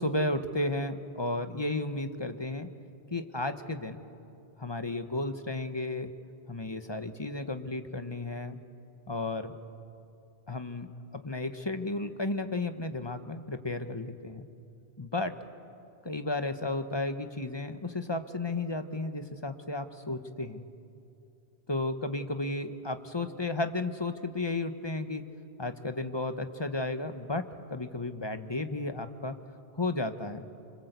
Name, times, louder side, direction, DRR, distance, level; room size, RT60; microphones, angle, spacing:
voice 1, 0.0-2.7 3.1-4.0 4.6-6.1 6.5-8.6 9.1-9.5 10.5-10.9 11.2-14.4 15.0-15.3 16.0-20.7 21.7-25.2 25.6-27.4 27.7-29.3 29.8-30.4, left 2 dB, 25° left, 9 dB, 1.1 m, -33 dB
26.0 x 25.5 x 8.2 m, 2.7 s
omnidirectional pair, 1.1 m